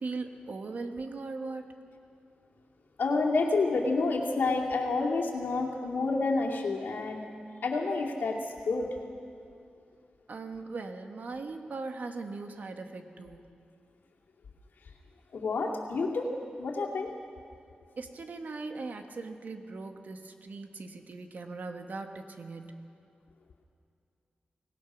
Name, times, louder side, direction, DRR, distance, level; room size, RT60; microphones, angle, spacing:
voice 1, 0.0-1.8 10.3-13.5 18.0-22.8, right 3 dB, 60° right, 5 dB, 1.5 m, -39 dB
voice 2, 3.0-7.3 7.6-8.9 15.3-16.3 16.6-17.1, left 3 dB, 90° left, -1 dB, 2.5 m, -29 dB
24.5 x 18.0 x 6.2 m, 2.5 s
wide cardioid pair, 115°, 3 cm